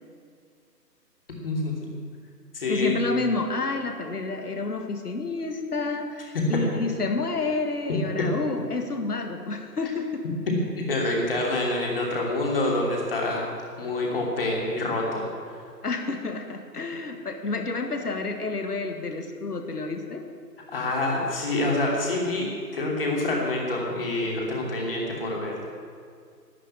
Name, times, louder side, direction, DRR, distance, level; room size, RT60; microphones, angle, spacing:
voice 1, 1.4-1.8 2.5-3.0 6.3-6.4 8.2-8.3 10.5-15.6 20.7-25.6, left 2 dB, 35° left, -1 dB, 3.0 m, -27 dB
voice 2, 2.7-10.3 15.8-20.3, left 3 dB, 65° left, 6 dB, 1.8 m, -29 dB
11.5 x 8.7 x 9.6 m, 2.2 s
figure-of-eight pair, 155°, 50 cm